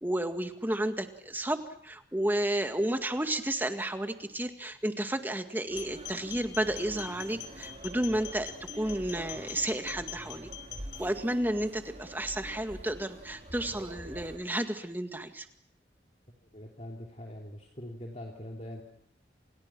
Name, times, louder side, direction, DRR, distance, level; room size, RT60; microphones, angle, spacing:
voice 1, 0.0-10.5 11.0-15.5, right 1 dB, 10° right, 7 dB, 1.9 m, -32 dB
sound 1, 5.7-11.0, left 11 dB, 85° left, 4.7 m, -44 dB
sound 2, 5.7-14.4, right 1 dB, 40° right, 4.5 m, -46 dB
voice 2, 16.5-18.8, left 1 dB, 40° left, 0 dB, 3.2 m, -43 dB
29.0 x 28.5 x 6.1 m, 0.69 s
head